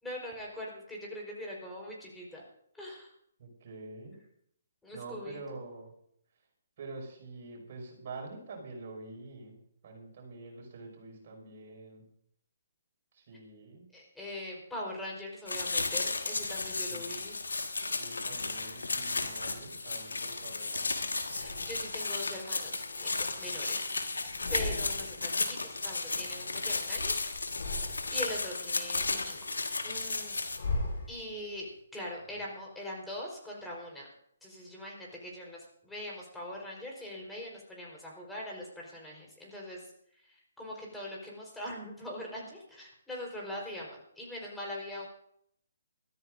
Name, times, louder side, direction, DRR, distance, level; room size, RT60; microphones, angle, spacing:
voice 1, 0.0-2.4 2.8-3.1 4.8-5.6 13.9-17.4 21.3-23.9 24.5-27.6 28.1-29.4 29.8-30.4 31.1-31.7 31.9-34.1 34.4-39.9 40.6-45.1, left 1 dB, 5° left, -3 dB, 4.3 m, -42 dB
voice 2, 3.4-4.2 4.9-5.9 6.8-9.6 9.8-12.0 13.1-13.9 16.9-17.2 18.0-21.0 32.3-32.4, right 3 dB, 50° right, 0 dB, 5.7 m, -46 dB
sound 1, 15.5-30.6, left 3 dB, 80° left, 1.7 m, -34 dB
sound 2, 19.4-20.5 21.2-22.2 22.6-23.9 24.2-25.3 25.6-27.0 27.4-28.4 28.9-31.6, left 2 dB, 65° left, 6.7 m, -40 dB
23.0 x 14.0 x 2.6 m, 0.70 s
figure-of-eight pair, 140°, 0 cm